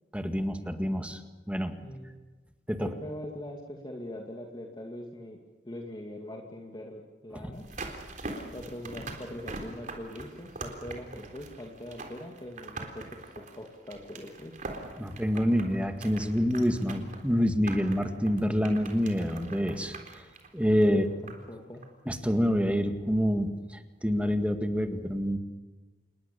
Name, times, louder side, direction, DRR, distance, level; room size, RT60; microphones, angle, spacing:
voice 1, 0.1-1.2 1.5-1.8 2.7-2.9 7.4-7.5 15.0-20.0 20.5-21.0 22.1-23.5 24.0-25.4, equal, 5° right, 6 dB, 1.9 m, -27 dB
voice 2, 1.8-2.1 2.8-5.4 5.6-7.6 8.5-14.6 20.9-21.8, left 1 dB, 25° left, 1 dB, 2.4 m, -42 dB
sound 1, 7.5-21.5 21.8-21.9, right 2 dB, 50° right, 3.7 m, -43 dB
28.5 x 21.5 x 7.0 m, 1.2 s
head